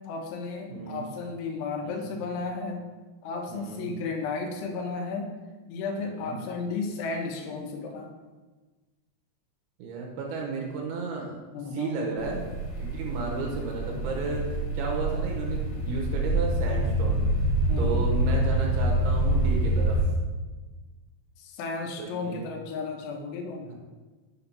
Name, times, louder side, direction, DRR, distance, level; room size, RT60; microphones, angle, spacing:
voice 1, 0.0-2.8 3.2-5.3 5.7-8.1 11.5-12.0 17.7-18.0 21.4-23.7, left 4 dB, 85° left, 2 dB, 3.4 m, -34 dB
voice 2, 0.7-1.0 1.8-2.1 3.5-3.9 6.0-6.4 9.8-11.5 11.7-12.5 12.8-14.4 14.7-17.2 17.8-20.0 22.0-22.4 23.7-23.8, right 4 dB, 75° right, 0 dB, 2.5 m, -33 dB
sound 1, 12.2-20.0, right 1 dB, 70° left, 2.9 m, -26 dB
7.2 x 4.4 x 5.6 m, 1.3 s
omnidirectional pair, 5.3 m